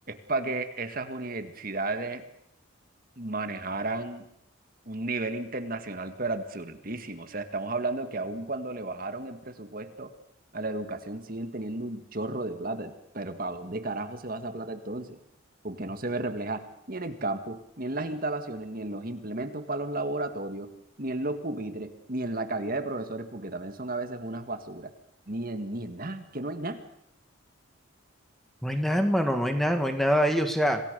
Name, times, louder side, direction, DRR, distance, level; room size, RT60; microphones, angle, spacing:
voice 1, 0.1-2.2 3.2-4.3 4.9-10.1 10.5-15.2 15.6-20.7 21.0-24.9 25.3-26.8, right 2 dB, 45° right, 8 dB, 1.8 m, -33 dB
voice 2, 28.6-30.8, equal, ahead, 6 dB, 1.8 m, -24 dB
27.0 x 18.0 x 6.8 m, 0.75 s
head